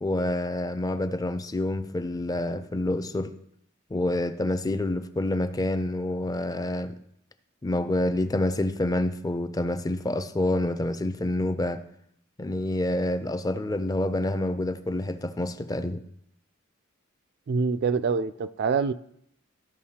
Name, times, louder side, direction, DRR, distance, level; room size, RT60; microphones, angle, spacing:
voice 1, 0.0-3.3 3.9-7.0 7.6-11.8 12.4-16.0, left 1 dB, 20° left, 11 dB, 0.4 m, -27 dB
voice 2, 17.5-18.9, right 5 dB, 50° right, 14 dB, 0.3 m, -25 dB
14.0 x 5.6 x 2.8 m, 0.72 s
head